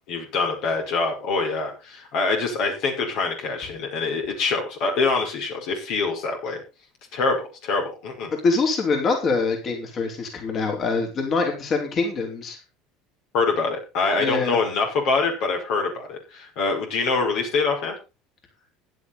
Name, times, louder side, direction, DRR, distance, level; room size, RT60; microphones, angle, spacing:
voice 1, 0.1-6.6 7.1-8.3 13.3-18.0, left 4 dB, 65° left, 2 dB, 5.3 m, -25 dB
voice 2, 8.4-12.6 14.2-14.6, left 4 dB, 40° left, 2 dB, 4.6 m, -24 dB
15.5 x 10.0 x 4.2 m, 0.30 s
supercardioid pair, 95°, 0 cm